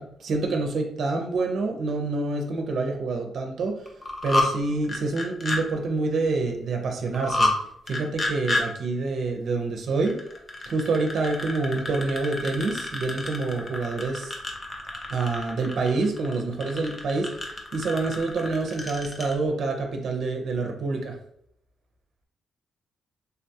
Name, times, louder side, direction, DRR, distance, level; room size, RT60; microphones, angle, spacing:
voice 1, 0.0-3.9 4.2-7.5 7.9-10.2 10.7-14.4 15.1-21.2, right 3 dB, 55° right, 3 dB, 0.5 m, -27 dB
sound 1, 3.9-4.5 4.8-5.6 7.1-7.6 7.9-8.6 10.0-19.3, left 2 dB, 20° left, 0.5 m, -29 dB
3.5 x 2.3 x 2.7 m, 0.71 s
cardioid pair, 155°, 0 cm